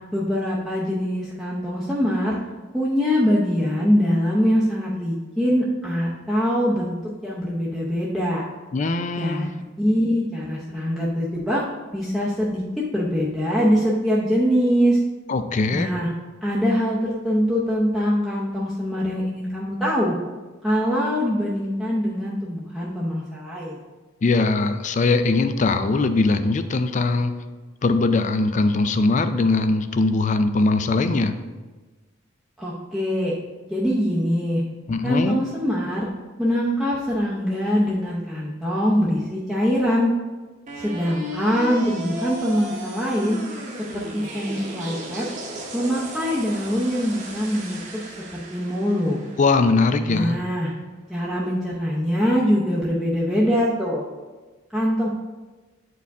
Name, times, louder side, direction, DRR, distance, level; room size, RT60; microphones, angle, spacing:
voice 1, 0.1-2.4 2.7-8.4 9.2-11.6 11.9-12.6 12.9-15.0 15.7-16.1 16.4-20.1 20.6-23.8 32.6-33.3 33.7-34.6 35.0-36.1 36.4-40.1 40.7-43.4 43.9-45.3 45.7-49.2 50.0-50.7 51.1-54.0 54.7-55.1, equal, ahead, -7 dB, 0.7 m, -23 dB
voice 2, 8.7-9.5 15.3-15.9 24.2-27.3 27.8-31.3 34.9-35.4 49.4-50.4, left 3 dB, 40° left, 10 dB, 0.4 m, -21 dB
sound 1, 40.7-50.7, right 1 dB, 40° right, 0.9 m, -36 dB
8.2 x 4.7 x 3.5 m, 1.3 s
head